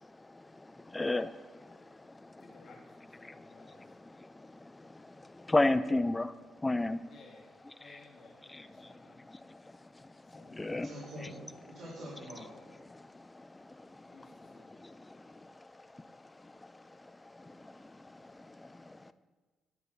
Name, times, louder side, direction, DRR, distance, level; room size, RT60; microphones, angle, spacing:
voice 1, 0.2-2.5 3.2-6.3 6.6-7.0 7.8-8.0 8.5-10.9 11.2-11.3 11.7-11.8 12.8-19.1, left 2 dB, 15° left, 13 dB, 0.4 m, -37 dB
voice 2, 2.4-4.0 7.0-7.5 7.8-9.2 10.2-10.8 14.0-14.7, left 3 dB, 55° left, -2 dB, 1.5 m, -58 dB
voice 3, 10.7-12.5, equal, 65° right, -9 dB, 3.2 m, -45 dB
11.0 x 4.0 x 7.0 m, 1.3 s
cardioid pair, 90°, 0 cm